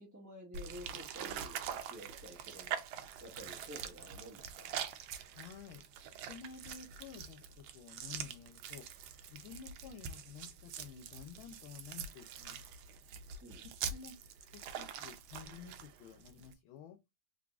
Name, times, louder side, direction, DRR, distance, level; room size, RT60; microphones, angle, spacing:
voice 1, 0.0-2.9 3.2-4.8 13.4-13.6, equal, 15° right, 0.7 m, -51 dB
sound 1, 0.5-16.5, right 8 dB, 80° right, 1.4 m, -44 dB
voice 2, 5.4-5.8 6.3-8.9 9.3-12.7 13.9-14.1 14.5-17.0, left 7 dB, 85° left, 1.4 m, -52 dB
3.8 x 3.3 x 2.3 m
omnidirectional pair, 2.2 m